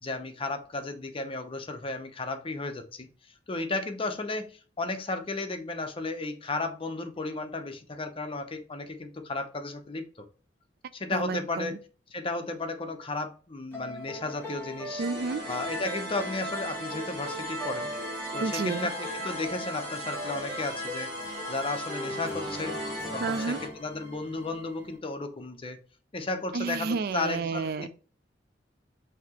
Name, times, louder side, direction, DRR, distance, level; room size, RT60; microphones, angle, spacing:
voice 1, 0.0-3.1 3.5-10.3 10.9-11.8 12.1-15.0 15.5-17.9 18.3-21.1 21.5-22.8 23.1-25.8 26.1-27.9, left 3 dB, 30° left, 0.7 m, -34 dB
voice 2, 11.1-11.8 15.0-15.4 18.4-18.9 23.2-23.6 26.5-27.9, right 4 dB, 55° right, 0.3 m, -31 dB
sound 1, 13.7-25.0, left 1 dB, 15° left, 1.2 m, -39 dB
sound 2, 15.0-23.7, equal, 30° right, 2.4 m, -38 dB
5.8 x 2.8 x 2.9 m
head